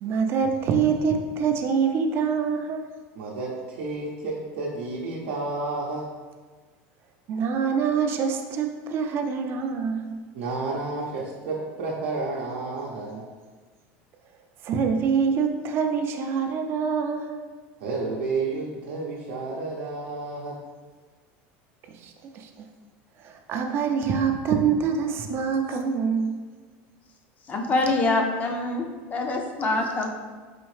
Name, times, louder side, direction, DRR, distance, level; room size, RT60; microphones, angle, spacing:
voice 1, 0.0-2.9 7.3-10.2 14.6-17.4 21.9-22.7 23.2-26.4, right 6 dB, 40° right, 4 dB, 0.4 m, -25 dB
voice 2, 3.1-6.1 10.3-13.2 17.8-20.6, right 3 dB, 85° right, -5 dB, 0.6 m, -31 dB
voice 3, 27.5-30.1, left 2 dB, 25° left, 3 dB, 0.5 m, -25 dB
4.1 x 2.7 x 3.2 m, 1.4 s
supercardioid pair, 135°, 6 cm